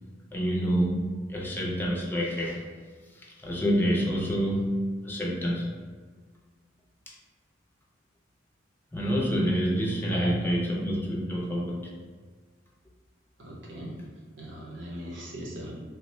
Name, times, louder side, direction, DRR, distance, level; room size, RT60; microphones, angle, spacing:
voice 1, 0.3-2.6 3.1-5.8 8.9-12.0, equal, 10° left, -3 dB, 0.5 m, -28 dB
voice 2, 10.0-10.6 13.4-14.1 14.4-15.8, equal, 70° right, -2 dB, 0.8 m, -39 dB
3.2 x 2.1 x 4.1 m, 1.5 s
head